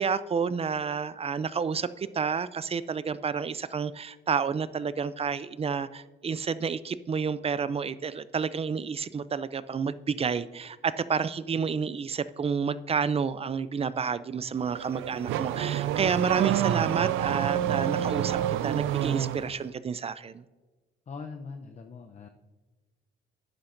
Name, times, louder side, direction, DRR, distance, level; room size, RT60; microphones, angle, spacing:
voice 1, 0.0-20.4, right 6 dB, 30° right, 16 dB, 0.4 m, -30 dB
Car / Accelerating revving vroom, 14.6-19.6, right 11 dB, 90° right, 0.4 m, -28 dB
voice 2, 21.1-22.3, left 4 dB, 35° left, 5 dB, 0.7 m, -41 dB
11.5 x 10.0 x 2.6 m, 1.2 s
cardioid pair, 90°, 20 cm